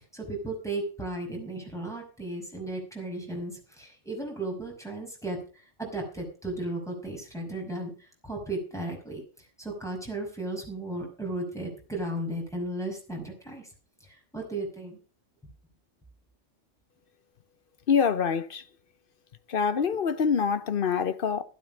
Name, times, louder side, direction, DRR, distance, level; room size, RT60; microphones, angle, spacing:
voice 1, 0.1-9.2 9.6-13.7 14.0-15.0, right 2 dB, ahead, 5.5 m, -35 dB
voice 2, 17.9-18.6 19.5-21.4, left 6 dB, 50° left, 0.9 m, -25 dB
12.5 x 12.0 x 5.1 m
omnidirectional pair, 1.3 m